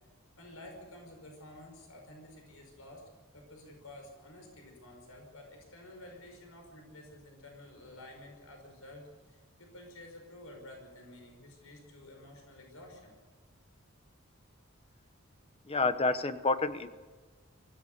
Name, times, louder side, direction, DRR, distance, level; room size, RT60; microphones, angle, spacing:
voice 1, 0.4-3.0 3.3-13.2, left 1 dB, 80° left, 2 dB, 5.4 m, -51 dB
voice 2, 15.7-16.9, left 3 dB, 25° left, 11 dB, 1.0 m, -29 dB
24.0 x 16.0 x 6.8 m, 1.4 s
head